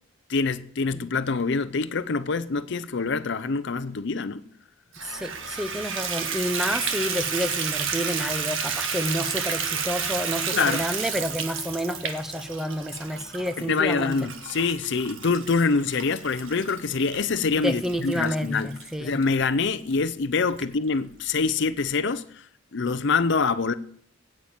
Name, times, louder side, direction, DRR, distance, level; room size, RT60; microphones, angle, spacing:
voice 1, 0.3-4.4 10.5-10.8 13.6-18.7 19.0-22.2 22.7-23.7, left 4 dB, 55° left, 0.6 m, -25 dB
Water tap faucet / Bathtub (filling or washing), 4.9-19.3 19.9-20.0 20.5-20.6 20.9-21.0, right 6 dB, 65° right, 1.5 m, -31 dB
voice 2, 5.0-14.1 17.6-19.2, equal, ahead, 0.7 m, -29 dB
9.4 x 8.8 x 8.9 m
head